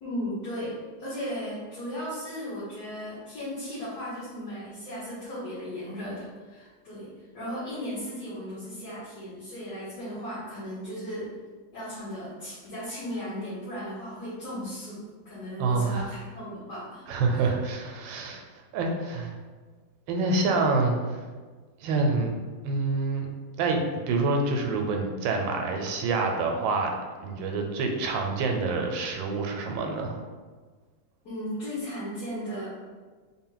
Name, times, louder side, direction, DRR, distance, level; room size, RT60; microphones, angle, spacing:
voice 1, 0.0-11.3 11.7-17.0 17.3-17.5 31.2-32.7, equal, 60° left, -10 dB, 1.6 m, -36 dB
voice 2, 15.6-16.1 17.1-18.4 18.7-19.3 20.1-21.2 21.8-22.3 22.6-23.3 23.6-26.9 27.2-30.2, right 3 dB, 80° right, 2 dB, 1.3 m, -27 dB
4.1 x 2.1 x 3.8 m, 1.4 s
omnidirectional pair, 2.0 m